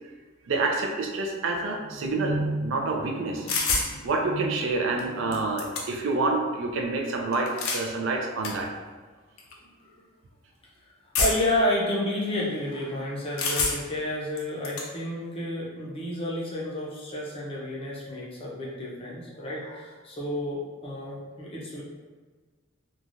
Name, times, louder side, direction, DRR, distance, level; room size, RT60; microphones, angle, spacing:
voice 1, 0.5-8.7, right 3 dB, 60° right, 1 dB, 0.4 m, -28 dB
sound 1, 3.5-3.9 5.0-5.1 5.3-6.1 7.3-7.9 8.4-8.5 9.4-9.5 11.1-11.6 13.4-14.0 14.4-14.9, left 3 dB, 75° left, 0.5 m, -27 dB
voice 2, 11.2-21.8, left 1 dB, 25° left, -4 dB, 0.5 m, -30 dB
3.1 x 2.2 x 2.5 m, 1.4 s
head